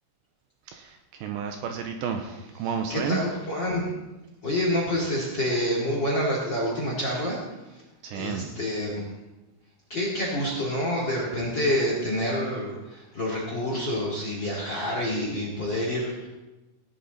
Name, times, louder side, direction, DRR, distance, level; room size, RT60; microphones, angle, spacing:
voice 1, 0.7-3.2 8.0-8.5, right 7 dB, 90° right, 5 dB, 2.5 m, -31 dB
voice 2, 2.9-3.9 4.4-7.4 7.7-7.8 8.1-9.0 9.9-16.3, left 1 dB, 35° left, -3 dB, 1.8 m, -27 dB
18.0 x 11.0 x 4.1 m, 1.0 s
omnidirectional pair, 6.0 m